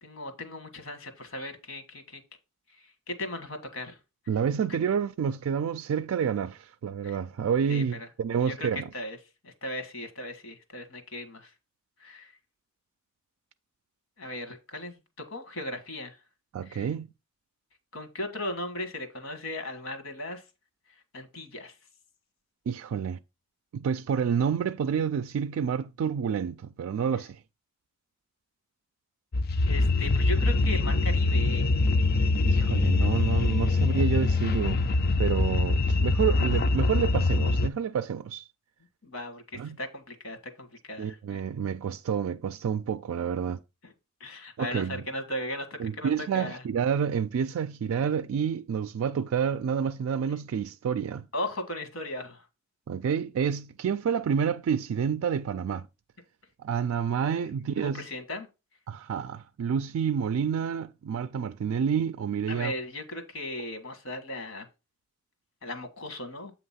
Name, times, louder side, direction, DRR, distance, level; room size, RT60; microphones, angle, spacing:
voice 1, 0.0-2.2 2.7-4.0 7.0-7.2 7.7-8.1 8.4-9.2 9.4-11.5 12.0-12.3 14.2-15.0 15.3-16.2 16.6-16.9 17.9-20.4 21.1-21.7 29.7-31.7 39.0-41.4 43.8-43.9 44.2-46.6 51.3-52.5 57.8-58.5 62.5-64.7 65.6-66.5, left 1 dB, 70° left, 1.4 m, -37 dB
voice 2, 4.3-8.9 16.5-17.1 22.7-23.2 23.7-27.4 32.4-34.8 35.2-38.4 39.5-39.8 41.0-43.6 44.6-45.0 45.8-51.3 52.9-55.9 56.6-58.1 58.9-62.7, right 7 dB, 80° right, 0.3 m, -29 dB
sound 1, 29.3-37.7, left 3 dB, 50° left, 0.4 m, -24 dB
7.9 x 2.9 x 5.6 m
head